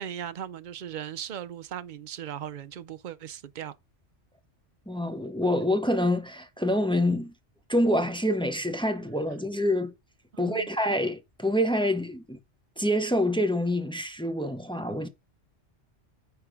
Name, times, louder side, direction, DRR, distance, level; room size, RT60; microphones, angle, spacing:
voice 1, 0.0-3.7 10.3-10.7, right 9 dB, 55° right, 0.6 m, -38 dB
voice 2, 4.9-7.3 7.7-9.9 10.4-12.4 12.8-15.1, left 1 dB, 5° left, 0.4 m, -26 dB
9.3 x 3.4 x 4.8 m
omnidirectional pair, 1.2 m